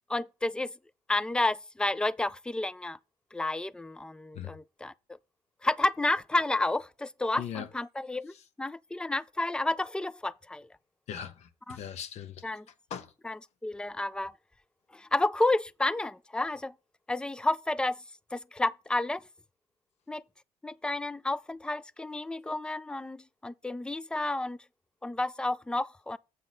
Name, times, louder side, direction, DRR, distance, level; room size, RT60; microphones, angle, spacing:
voice 1, 0.1-0.7 1.1-3.0 3.3-4.9 5.6-10.7 11.7-11.8 12.4-12.7 13.2-14.3 14.9-16.7 17.1-18.0 18.3-19.2 20.1-20.2 20.6-24.6 25.0-26.2, left 2 dB, 5° left, 0.4 m, -31 dB
voice 2, 7.4-7.7 11.1-12.4 12.9-13.1, left 9 dB, 65° left, 1.2 m, -39 dB
7.8 x 4.1 x 6.4 m
cardioid pair, 115°, 12 cm